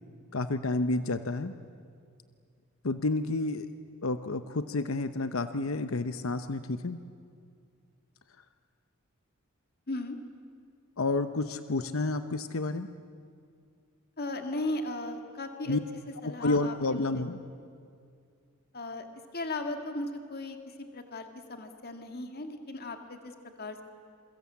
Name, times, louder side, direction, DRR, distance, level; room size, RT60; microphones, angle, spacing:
voice 1, 0.3-1.5 2.8-3.7 4.0-7.0 11.0-12.9 15.7-15.8 16.2-17.4, left 2 dB, 70° left, 10 dB, 0.9 m, -30 dB
voice 2, 14.2-15.8 16.2-17.2 18.7-19.1 19.3-23.8, left 2 dB, 50° left, 6 dB, 2.1 m, -37 dB
28.0 x 23.0 x 8.6 m, 2.3 s
head